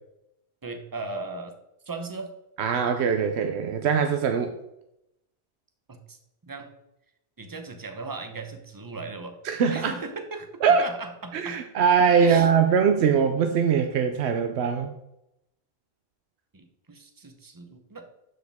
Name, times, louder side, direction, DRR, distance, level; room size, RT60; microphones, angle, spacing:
voice 1, 0.6-1.5 1.9-2.3 5.9-6.2 6.4-6.7 7.4-9.4 9.7-11.6 12.2-12.5 16.5-18.1, right 3 dB, 20° right, 6 dB, 0.9 m, -37 dB
voice 2, 2.6-4.5 9.4-9.9 10.6-10.9 11.3-14.9, right 6 dB, 85° right, 6 dB, 0.9 m, -22 dB
12.0 x 5.0 x 3.5 m, 0.85 s
omnidirectional pair, 1.1 m